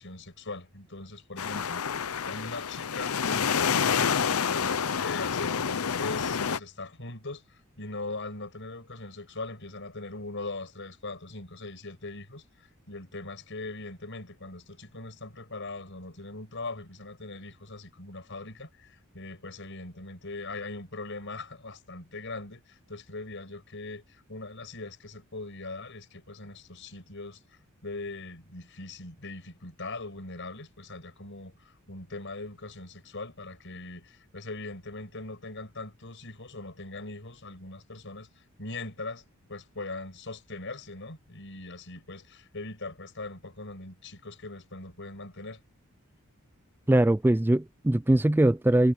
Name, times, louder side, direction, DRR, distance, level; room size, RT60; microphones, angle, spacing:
voice 1, 0.0-5.6 6.0-27.4 27.8-39.2 39.5-45.6, left 2 dB, 60° left, 5.8 m, -41 dB
sound 1, 1.4-6.6, left 6 dB, 80° left, 0.7 m, -28 dB
voice 2, 46.9-48.9, right 1 dB, 10° right, 0.3 m, -22 dB
head